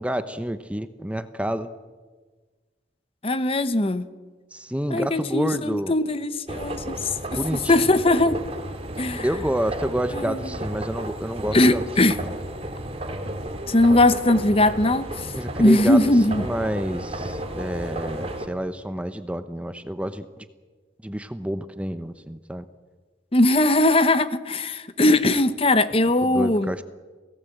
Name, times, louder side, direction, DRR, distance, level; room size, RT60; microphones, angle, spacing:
voice 1, 0.0-1.7 4.5-5.9 7.3-7.7 9.2-12.3 15.3-16.0 16.3-20.3 21.0-22.6 26.2-26.8, equal, 5° right, 0.8 m, -29 dB
voice 2, 3.2-4.1 4.9-8.4 9.0-9.3 10.1-10.5 11.5-12.2 13.7-16.5 23.3-26.7, left 1 dB, 30° left, 0.9 m, -20 dB
sound 1, 6.5-18.5, right 1 dB, 30° right, 2.4 m, -33 dB
28.0 x 18.0 x 8.0 m
head